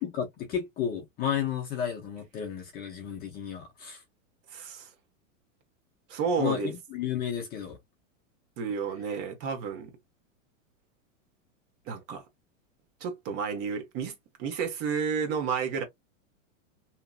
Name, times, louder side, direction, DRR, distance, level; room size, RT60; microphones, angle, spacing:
voice 1, 0.0-4.0 6.4-7.8, left 9 dB, 25° left, 0.5 m, -32 dB
voice 2, 4.5-4.9 6.1-6.7 8.6-9.9 11.9-12.2 13.0-14.1 14.4-15.8, right 6 dB, 35° right, 1.0 m, -31 dB
2.8 x 2.5 x 2.3 m
supercardioid pair, 140°, 40 cm